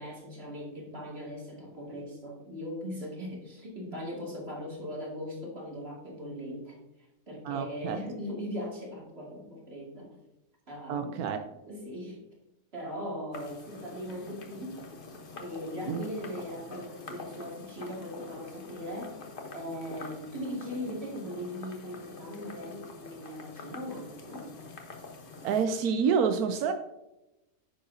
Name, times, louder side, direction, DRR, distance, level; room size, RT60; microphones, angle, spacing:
voice 1, 0.0-6.8 7.3-10.2 10.7-11.4 11.7-12.2 12.7-14.8 15.4-19.2 19.5-24.6, equal, 40° right, -2 dB, 2.5 m, -39 dB
voice 2, 7.4-8.0 10.9-11.4 15.9-16.1 25.4-26.7, right 6 dB, 85° right, 7 dB, 1.1 m, -28 dB
sound 1, 13.3-25.7, left 3 dB, 40° left, 1.1 m, -46 dB
9.6 x 6.8 x 2.7 m, 0.94 s
omnidirectional pair, 1.6 m